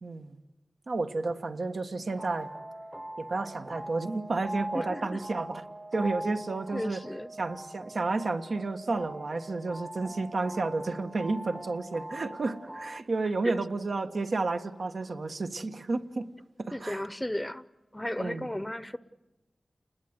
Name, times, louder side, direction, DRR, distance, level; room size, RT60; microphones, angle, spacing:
voice 1, 0.0-0.3 0.9-2.5 3.2-5.6 5.9-7.0 7.4-16.3 16.6-17.0 18.2-18.5, right 3 dB, 75° right, 6 dB, 1.5 m, -31 dB
sound 1, 2.1-13.0, right 1 dB, 15° right, 0.9 m, -42 dB
voice 2, 4.7-5.2 6.7-7.3 13.4-13.5 16.7-17.6 17.9-19.0, left 1 dB, 15° left, 15 dB, 0.8 m, -34 dB
30.0 x 20.5 x 8.1 m, 1.1 s
wide cardioid pair, 60°, 0 cm